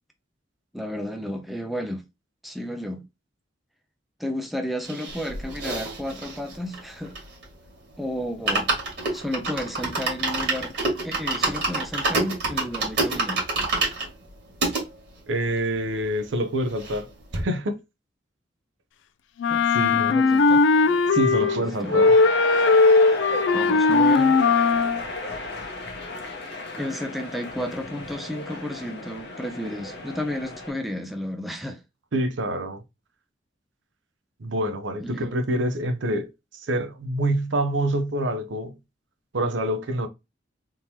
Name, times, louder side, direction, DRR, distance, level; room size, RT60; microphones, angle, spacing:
voice 1, 0.7-2.0 2.4-3.0 4.2-7.1 8.0-8.7 9.1-10.7 11.0-13.4 19.5-19.6 19.9-20.6 21.3-22.0 23.5-24.4 26.8-31.8 35.0-35.3, equal, ahead, 0.5 m, -32 dB
sound 1, 4.8-7.6 7.9-8.0 8.3-14.8 15.4-15.5 15.7-15.8 16.1-17.1 17.3-17.4, right 3 dB, 65° right, 1.8 m, -27 dB
voice 2, 15.3-17.8 19.7-20.2 21.1-22.1 32.1-32.8 34.4-38.8 39.3-40.1, right 1 dB, 80° right, 0.7 m, -26 dB
Wind instrument woodwind instrument, 19.4-21.6 21.9-25.0, left 4 dB, 85° left, 0.4 m, -18 dB
sound 2, 20.7-30.7, left 2 dB, 65° left, 0.9 m, -34 dB
3.6 x 2.9 x 2.8 m
head